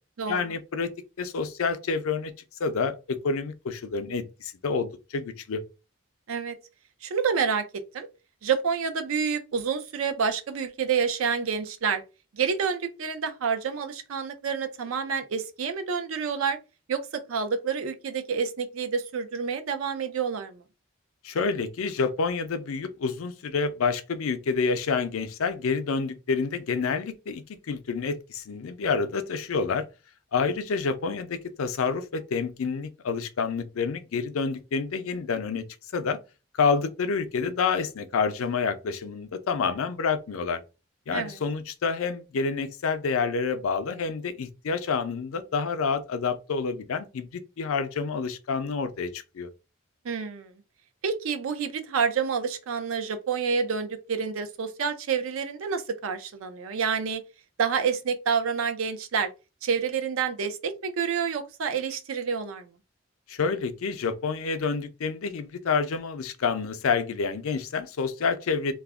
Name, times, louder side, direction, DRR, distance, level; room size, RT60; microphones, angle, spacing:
voice 1, 0.3-0.9 1.2-2.3 2.6-5.6 21.2-29.8 30.3-35.6 35.9-36.2 36.6-40.6 41.1-49.5 63.3-68.7, left 5 dB, 80° left, 0.4 m, -28 dB
voice 2, 7.0-7.6 7.9-8.1 8.4-12.0 12.3-16.6 16.9-20.6 41.1-41.4 50.0-50.5 51.0-57.2 57.6-59.3 59.6-62.7, right 6 dB, 75° right, 0.5 m, -28 dB
2.3 x 2.1 x 3.5 m
head